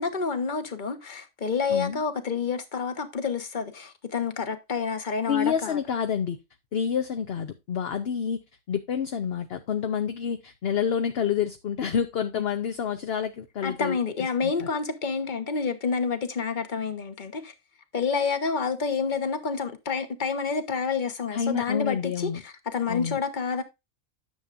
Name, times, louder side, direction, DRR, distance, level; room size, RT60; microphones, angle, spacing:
voice 1, 0.0-5.8 12.4-12.5 13.6-17.5 17.9-23.6, left 5 dB, 35° left, 1.2 m, -29 dB
voice 2, 1.7-2.0 5.3-6.4 6.7-8.4 8.7-14.7 21.3-22.4 22.9-23.2, left 7 dB, 55° left, 0.9 m, -28 dB
10.0 x 7.0 x 2.5 m
omnidirectional pair, 1.4 m